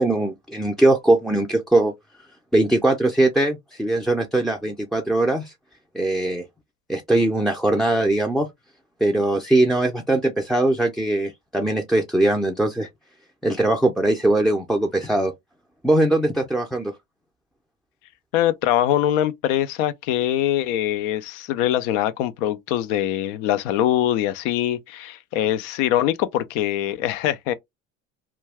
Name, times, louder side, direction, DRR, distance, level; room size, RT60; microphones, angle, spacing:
voice 1, 0.0-1.9 2.5-5.5 5.9-6.4 6.9-8.5 9.0-12.9 13.4-15.3 15.8-16.9, right 1 dB, ahead, 0.4 m, -21 dB
voice 2, 18.3-27.5, left 12 dB, 70° left, 0.5 m, -23 dB
2.3 x 2.2 x 3.4 m
hypercardioid pair, 60°, 39 cm